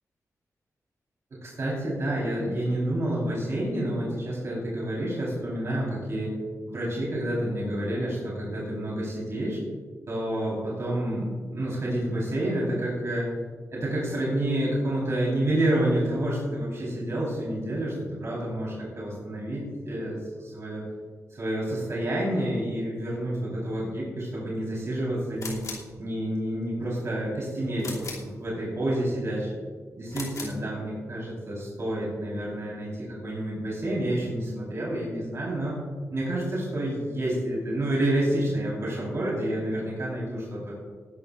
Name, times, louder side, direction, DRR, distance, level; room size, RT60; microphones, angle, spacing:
voice 1, 1.3-6.4 6.7-9.6 10.1-13.3 13.7-17.9 18.2-20.8 21.3-25.7 26.0-29.5 30.0-35.8 36.1-40.7, right 1 dB, 50° right, -5 dB, 4.4 m, -29 dB
sound 1, 25.4-25.9 27.8-28.3 30.1-30.6, left 3 dB, 65° left, 3.0 m, -37 dB
19.5 x 12.5 x 2.6 m, 1.5 s
wide cardioid pair, 150°, 6 cm